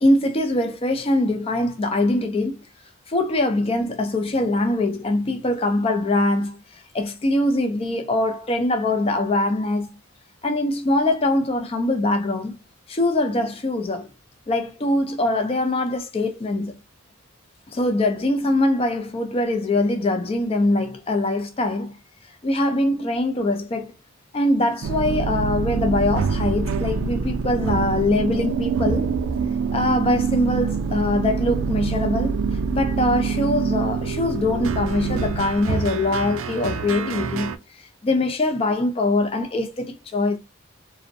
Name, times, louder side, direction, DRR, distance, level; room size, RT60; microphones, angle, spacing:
voice 1, 0.0-2.6 3.1-9.9 10.4-12.5 12.9-14.1 14.5-16.8 17.7-22.0 22.4-23.9 24.3-29.2 29.7-32.4 32.7-37.6 38.0-40.4, left 2 dB, 30° left, 0.4 m, -23 dB
sound 1, 24.8-37.6, right 5 dB, 80° right, 0.4 m, -25 dB
2.5 x 2.0 x 2.5 m
head